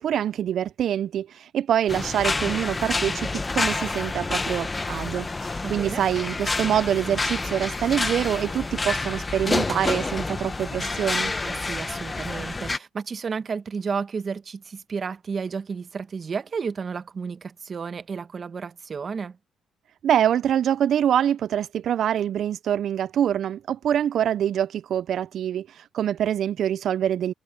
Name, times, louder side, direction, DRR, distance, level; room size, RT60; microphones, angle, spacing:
voice 1, 0.0-11.3 20.0-27.3, right 10 dB, 65° right, 0.3 m, -25 dB
sound 1, 1.9-12.8, left 3 dB, 25° left, 1.1 m, -28 dB
voice 2, 5.6-6.0 11.4-19.4, right 5 dB, 45° right, 1.2 m, -32 dB
cardioid pair, 90°, 0 cm